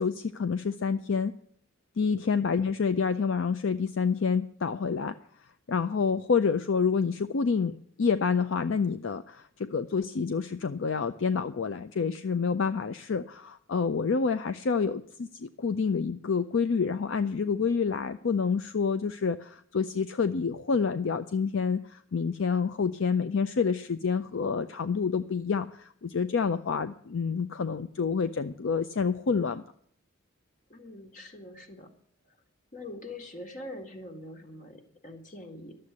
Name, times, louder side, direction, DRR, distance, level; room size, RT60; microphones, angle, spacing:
voice 1, 0.0-1.3 2.0-5.2 5.7-29.6, left 5 dB, 60° left, 11 dB, 0.5 m, -28 dB
voice 2, 30.7-31.9 32.3-32.4 32.7-35.8, left 1 dB, 35° left, 4 dB, 1.9 m, -44 dB
11.5 x 7.6 x 9.5 m, 0.62 s
head